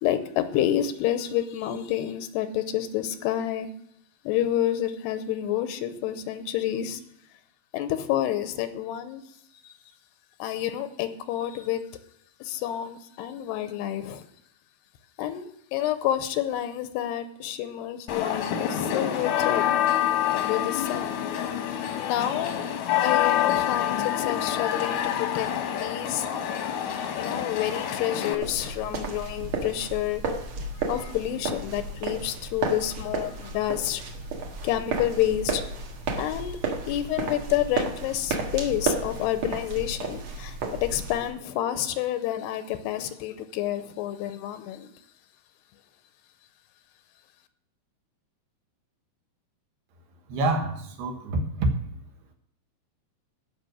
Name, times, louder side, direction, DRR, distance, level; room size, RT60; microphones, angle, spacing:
voice 1, 0.0-3.7 4.2-7.0 7.7-9.2 9.6-9.8 10.4-11.9 12.4-14.2 15.2-19.7 20.3-21.2 21.9-22.6 23.0-26.3 27.2-30.2 30.8-34.0 34.6-35.6 36.2-36.6 36.9-44.9, left 12 dB, 85° left, 10 dB, 2.8 m, -29 dB
sound 1, 18.1-28.4, left 10 dB, 65° left, 1.9 m, -27 dB
sound 2, 28.4-41.3, right 4 dB, 55° right, 2.5 m, -32 dB
voice 2, 50.3-51.7, right 2 dB, 75° right, 4 dB, 3.4 m, -26 dB
15.5 x 5.7 x 6.2 m, 0.76 s
omnidirectional pair, 4.7 m